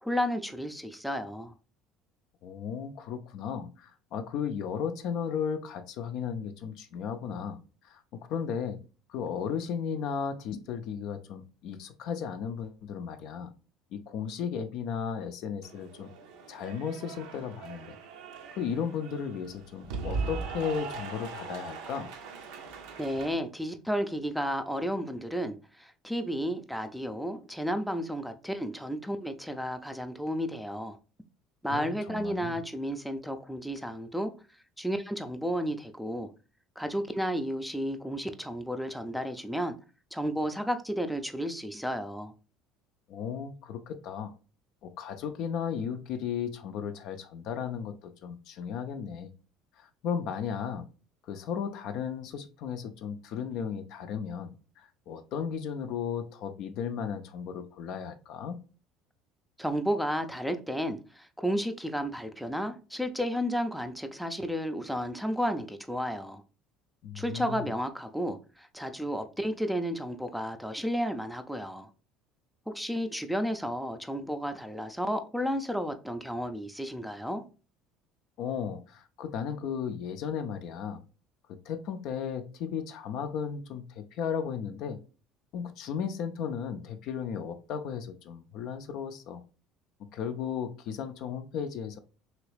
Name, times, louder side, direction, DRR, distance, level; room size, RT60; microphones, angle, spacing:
voice 1, 0.0-1.5 23.0-31.0 31.6-34.3 34.8-36.3 36.8-39.8 40.1-42.3 59.6-66.4 67.1-71.9 72.7-77.4, equal, ahead, 0.4 m, -32 dB
voice 2, 2.4-7.6 7.8-8.0 8.3-8.8 9.1-13.5 13.9-16.1 16.5-18.0 18.5-22.1 31.7-32.6 43.1-44.3 44.8-49.3 49.8-50.9 51.2-58.6 67.0-67.7 78.4-81.0 81.5-85.0 85.5-89.4 90.1-92.0, left 7 dB, 60° left, 0.4 m, -35 dB
Cheering / Applause, 15.6-23.3, right 4 dB, 70° right, 0.5 m, -40 dB
3.0 x 2.8 x 3.1 m
hypercardioid pair, 65°, 0 cm